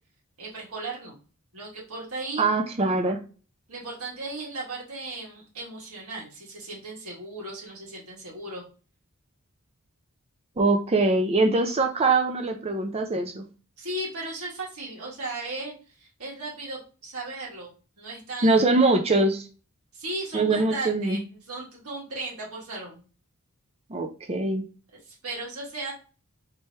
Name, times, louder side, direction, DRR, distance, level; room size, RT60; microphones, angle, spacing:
voice 1, 0.4-1.2 1.5-2.5 3.7-8.6 13.8-17.7 18.0-18.8 19.9-23.0 25.0-25.9, right 2 dB, 75° right, -4 dB, 1.8 m, -36 dB
voice 2, 2.4-3.2 10.6-13.4 18.4-19.5 20.3-21.2 23.9-24.6, right 2 dB, 25° right, 4 dB, 0.5 m, -23 dB
3.3 x 2.9 x 4.5 m, 0.35 s
head